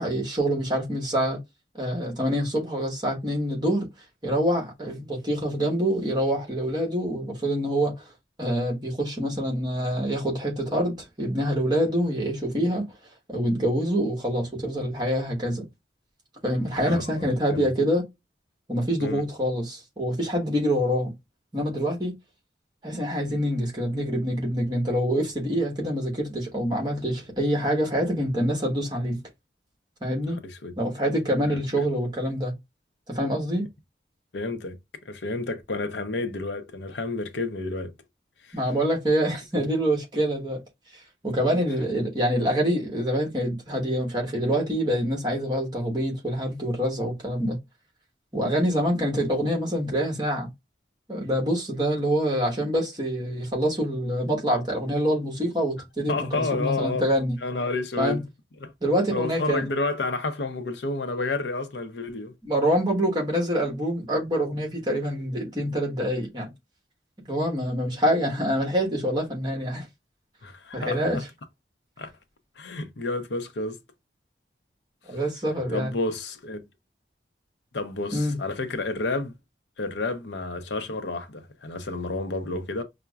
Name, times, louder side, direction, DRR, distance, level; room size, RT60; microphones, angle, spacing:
voice 1, 0.0-1.4 1.8-3.9 4.2-8.0 8.4-12.8 13.3-15.6 16.4-18.0 18.7-21.1 21.5-22.1 22.8-29.2 30.0-30.4 30.8-32.5 33.1-33.7 38.5-40.6 41.2-47.6 48.3-50.5 51.1-57.4 58.0-58.2 58.8-59.7 62.4-66.5 67.3-69.9 70.7-71.2 75.1-75.9 78.1-78.4, equal, 25° right, 1.2 m, -26 dB
voice 2, 16.8-17.2 17.5-17.7 19.0-19.2 30.3-30.7 31.4-31.6 34.3-34.8 35.1-37.9 38.4-38.6 56.1-57.1 57.4-58.2 58.6-58.7 59.1-62.3 70.4-71.2 72.0-72.1 72.6-73.8 75.1-75.2 75.7-76.6 77.7-79.3 79.8-82.8, left 3 dB, 80° left, 0.6 m, -30 dB
5.6 x 2.1 x 2.3 m
head